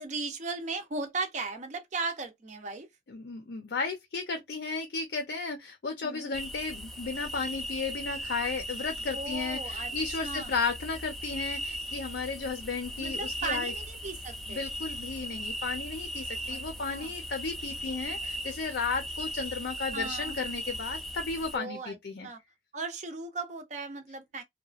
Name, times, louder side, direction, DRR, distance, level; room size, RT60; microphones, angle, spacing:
voice 1, 0.0-2.9 6.0-6.3 9.1-9.9 10.2-10.5 13.0-14.6 16.5-16.6 16.9-17.1 19.9-20.4 21.5-22.0 22.2-22.4 22.7-24.4, right 3 dB, 40° right, 0.6 m, -36 dB
voice 2, 3.1-13.7 14.5-22.3, left 4 dB, 70° left, 0.6 m, -34 dB
sound 1, 6.3-21.6, equal, ahead, 0.5 m, -38 dB
2.8 x 2.3 x 2.4 m
head